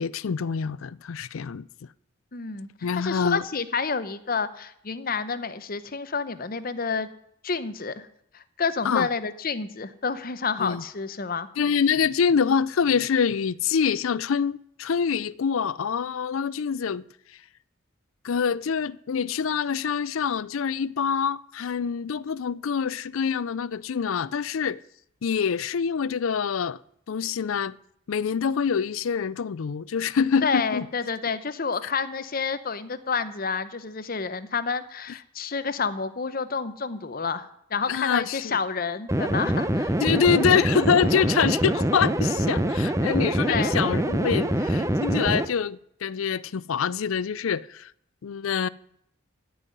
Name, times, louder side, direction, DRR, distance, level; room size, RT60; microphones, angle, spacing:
voice 1, 0.0-1.6 2.8-3.4 8.8-9.1 10.6-10.8 11.6-17.0 18.2-24.8 25.2-26.8 27.1-27.8 28.1-30.8 37.9-38.6 40.0-47.9 48.2-48.7, left 6 dB, 80° left, 0.4 m, -25 dB
voice 2, 2.3-2.7 3.0-7.1 7.4-7.9 8.3-11.5 30.4-39.9 43.5-43.8, left 5 dB, 45° left, 0.8 m, -29 dB
sound 1, 39.1-45.4, right 1 dB, 15° right, 0.7 m, -24 dB
14.5 x 5.6 x 9.6 m
head